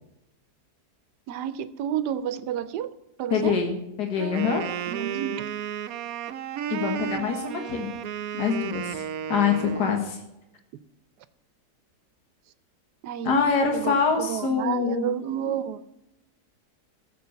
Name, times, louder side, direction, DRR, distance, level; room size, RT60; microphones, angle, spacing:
voice 1, 1.3-2.9 3.2-3.5 4.9-5.5 10.7-10.8 13.0-13.4 13.7-15.8, right 10 dB, 90° right, 13 dB, 1.3 m, -30 dB
voice 2, 3.3-4.6 6.7-7.9 8.3-9.0 9.3-10.2 13.3-15.0, left 6 dB, 80° left, 3 dB, 2.1 m, -25 dB
Wind instrument woodwind instrument, 4.2-10.0, right 9 dB, 70° right, 1.0 m, -33 dB
14.5 x 7.6 x 6.8 m, 0.89 s
omnidirectional pair, 1.7 m